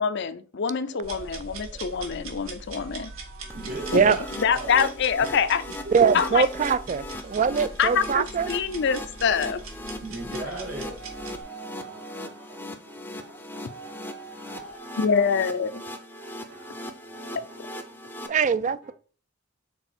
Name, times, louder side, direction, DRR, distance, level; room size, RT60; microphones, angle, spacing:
voice 1, 0.0-3.1 3.9-5.6 6.1-6.5 7.8-9.6 15.0-15.8 17.3-17.4, left 6 dB, 60° left, 0.5 m, -25 dB
voice 2, 0.9-2.3 2.8-4.9 5.2-5.3 5.8-6.2 7.2-7.6 8.8-9.5 10.0-15.3 16.2-18.9, right 2 dB, 70° right, 3.4 m, -41 dB
sound 1, 1.0-11.4, right 3 dB, 90° right, 1.5 m, -42 dB
sound 2, 3.5-18.3, left 1 dB, 10° left, 0.6 m, -39 dB
voice 3, 5.9-8.5 18.3-18.9, right 6 dB, 35° right, 0.3 m, -22 dB
6.0 x 4.0 x 4.3 m
head